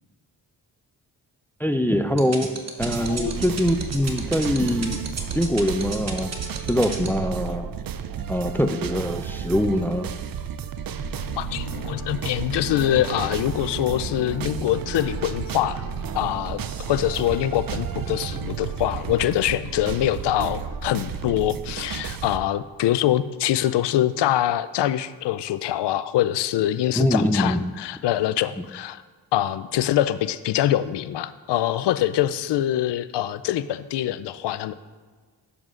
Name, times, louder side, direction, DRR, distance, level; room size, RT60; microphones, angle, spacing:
voice 1, 1.6-2.5 2.8-5.0 5.3-6.3 6.7-7.7 8.3-10.2 27.0-27.7, equal, 5° left, 9 dB, 0.5 m, -23 dB
sound 1, 2.2-7.1, right 4 dB, 35° right, 1.2 m, -32 dB
sound 2, 2.8-22.4, right 8 dB, 50° right, 0.6 m, -32 dB
voice 2, 3.0-3.4 11.4-15.8 16.1-29.0 29.3-34.7, left 12 dB, 65° left, 14 dB, 0.5 m, -24 dB
sound 3, 10.9-20.9, left 3 dB, 85° left, 1.2 m, -42 dB
11.0 x 7.1 x 2.5 m, 1.5 s
supercardioid pair, 50°, 45 cm